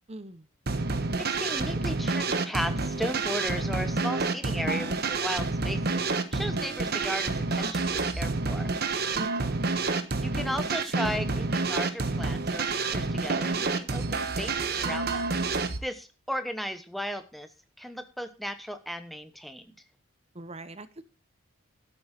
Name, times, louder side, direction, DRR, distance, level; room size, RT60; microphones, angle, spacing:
voice 1, 0.1-0.5 9.1-9.6 20.3-21.0, right 1 dB, 30° right, 13 dB, 0.8 m, -42 dB
sound 1, 0.7-15.8, right 3 dB, 45° right, 1.2 m, -28 dB
voice 2, 1.1-6.0 6.3-8.7 9.9-15.3 15.8-17.5 17.8-19.7, equal, ahead, 9 dB, 1.0 m, -36 dB
12.0 x 8.8 x 4.3 m, 0.35 s
head